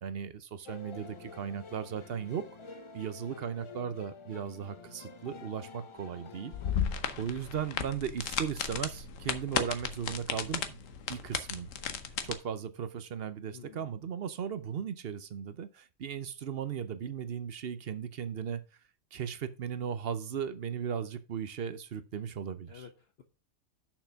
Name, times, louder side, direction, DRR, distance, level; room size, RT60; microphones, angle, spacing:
voice 1, 0.0-2.5 2.9-6.5 7.2-10.8 11.1-11.7 12.2-18.6 19.1-22.9, right 8 dB, 55° right, 0.9 m, -37 dB
sound 1, 0.7-6.7, left 4 dB, 30° left, 0.6 m, -49 dB
sound 2, 6.5-12.3, left 7 dB, 90° left, 1.3 m, -34 dB
voice 2, 13.5-13.9 22.7-23.2, left 7 dB, 55° left, 1.1 m, -51 dB
6.8 x 5.9 x 5.7 m
omnidirectional pair, 1.3 m